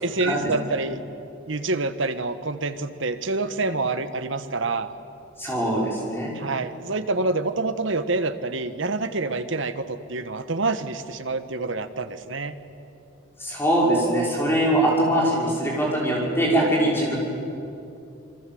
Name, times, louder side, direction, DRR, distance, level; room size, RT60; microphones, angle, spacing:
voice 1, 0.0-1.0 1.5-4.9 6.3-12.5, right 3 dB, 65° right, 10 dB, 1.2 m, -27 dB
voice 2, 5.4-6.3 13.4-17.2, right 1 dB, 10° left, -4 dB, 5.7 m, -22 dB
27.0 x 22.5 x 7.8 m, 2.8 s
head